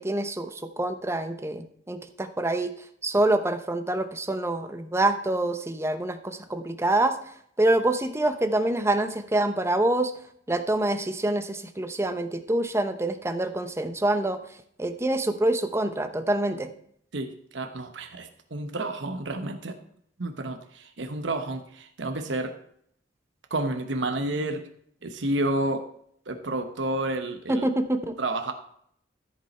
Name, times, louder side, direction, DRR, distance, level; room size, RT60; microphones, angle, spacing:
voice 1, 0.0-2.7 3.0-7.2 7.6-10.1 10.5-14.4 14.8-16.7 27.5-28.2, right 1 dB, 15° right, 9 dB, 0.7 m, -26 dB
voice 2, 17.1-19.8 20.2-22.5 23.5-24.6 25.0-25.8 26.3-27.7 28.2-28.5, right 2 dB, 90° right, 6 dB, 1.0 m, -30 dB
13.5 x 5.4 x 4.3 m, 0.67 s
head